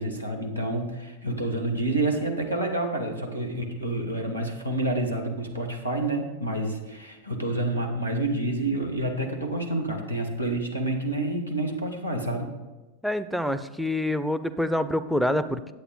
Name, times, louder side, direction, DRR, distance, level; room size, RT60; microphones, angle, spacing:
voice 1, 0.0-12.5, right 2 dB, 85° right, 1 dB, 1.2 m, -28 dB
voice 2, 13.0-15.7, left 1 dB, ahead, 13 dB, 0.4 m, -26 dB
9.1 x 8.0 x 3.8 m, 1.1 s
figure-of-eight pair, 90°, 0 cm